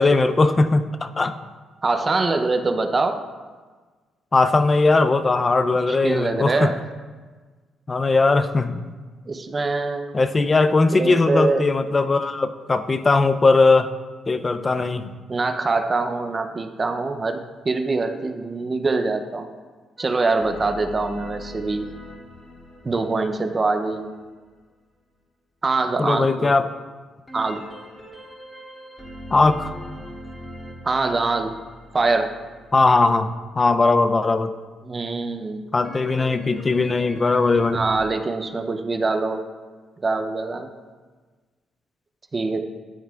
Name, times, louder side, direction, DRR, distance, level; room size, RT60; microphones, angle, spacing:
voice 1, 0.0-1.4 4.3-6.7 7.9-8.9 10.1-13.9 14.3-15.1 26.0-26.7 29.3-29.7 32.7-34.5 35.7-37.8, left 3 dB, 30° left, 11 dB, 0.4 m, -19 dB
voice 2, 1.8-3.2 5.8-6.8 9.3-10.2 10.9-11.7 15.3-19.5 20.0-21.9 22.8-24.1 25.6-26.6 27.3-27.6 30.8-31.6 31.9-32.3 34.8-35.7 37.7-39.4 40.0-40.7 42.3-42.6, right 3 dB, 30° right, 7 dB, 0.5 m, -24 dB
sound 1, 20.0-24.6 27.3-33.3 35.8-38.0, left 1 dB, 10° left, 1.6 m, -42 dB
12.5 x 4.6 x 2.3 m, 1.4 s
cardioid pair, 90°, 0 cm